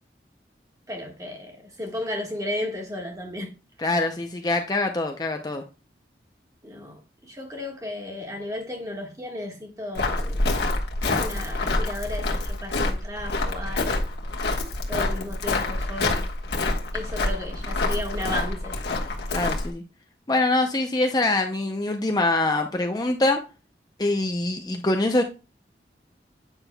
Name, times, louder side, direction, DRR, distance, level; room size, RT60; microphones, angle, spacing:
voice 1, 0.9-3.5 6.6-10.4 11.1-14.0 14.9-16.3 16.9-18.8, left 1 dB, 20° right, 1.5 m, -34 dB
voice 2, 3.8-5.6 19.3-19.8 20.3-23.4 24.0-25.2, left 2 dB, 20° left, 0.5 m, -24 dB
Walk footsteps, 9.9-19.7, left 2 dB, 75° left, 1.3 m, -27 dB
8.8 x 6.0 x 2.2 m
head